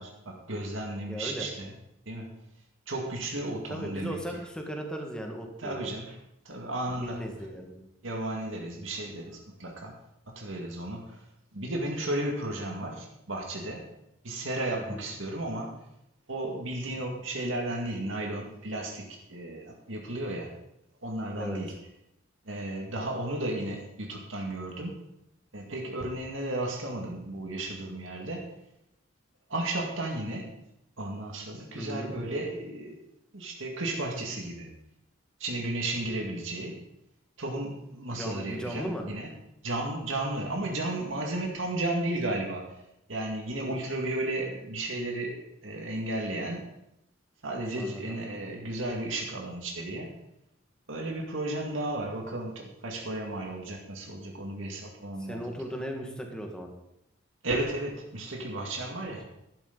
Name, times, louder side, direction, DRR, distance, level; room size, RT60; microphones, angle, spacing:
voice 1, 0.0-1.7 2.1-2.4 2.9-4.2 5.6-6.2 6.5-7.2 8.0-9.9 10.3-11.2 11.5-13.9 14.2-15.8 16.3-20.5 21.0-21.7 22.5-25.0 25.5-28.5 29.5-30.5 31.0-33.0 33.3-34.7 35.4-36.8 37.4-39.3 39.6-42.7 43.1-46.7 47.4-50.1 50.9-55.4 57.4-59.2, right 1 dB, 90° right, 0 dB, 2.1 m, -34 dB
voice 2, 1.1-1.5 3.7-5.9 7.0-7.8 14.8-15.1 21.4-21.6 31.7-32.2 38.2-39.1 47.7-48.2 55.2-56.7, equal, 5° left, 2 dB, 1.7 m, -37 dB
12.0 x 11.5 x 4.0 m, 0.83 s
head